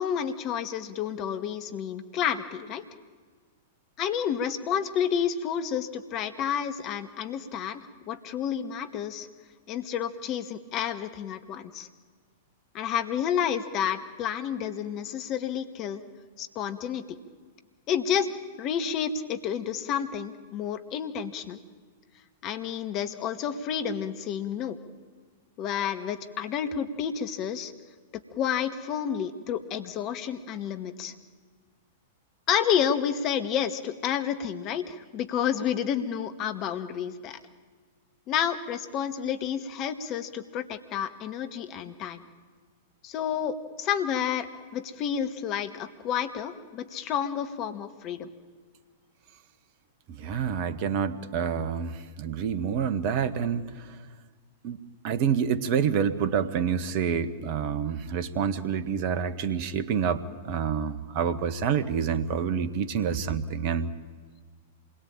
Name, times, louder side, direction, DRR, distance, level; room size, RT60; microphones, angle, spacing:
voice 1, 0.0-2.8 4.0-9.3 9.7-11.9 12.7-16.0 16.4-17.2 17.9-18.3 18.6-21.6 22.4-24.8 25.6-27.7 28.4-31.1 32.5-37.4 38.3-42.2 43.0-48.3, left 8 dB, 35° left, 9 dB, 2.0 m, -30 dB
voice 2, 50.1-53.9 54.6-54.8 55.0-63.9, right 7 dB, 45° right, 12 dB, 1.5 m, -28 dB
27.0 x 22.0 x 9.0 m, 1.5 s
figure-of-eight pair, 100°, 0 cm